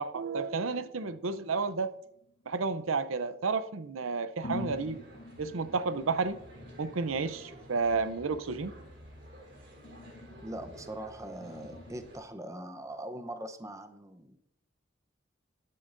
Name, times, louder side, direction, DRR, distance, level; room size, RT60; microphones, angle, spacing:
voice 1, 0.0-1.9 2.5-5.0 5.4-6.4 6.8-8.7, right 4 dB, 80° right, 12 dB, 0.6 m, -31 dB
sound 1, 2.0-3.4 3.9-4.0 4.4-12.0, left 1 dB, 70° left, 1.1 m, -47 dB
sound 2, 4.5-12.2, equal, 60° right, 3.6 m, -51 dB
voice 2, 10.4-14.4, right 1 dB, 15° right, 7 dB, 0.7 m, -41 dB
21.0 x 10.5 x 2.6 m, 0.77 s
head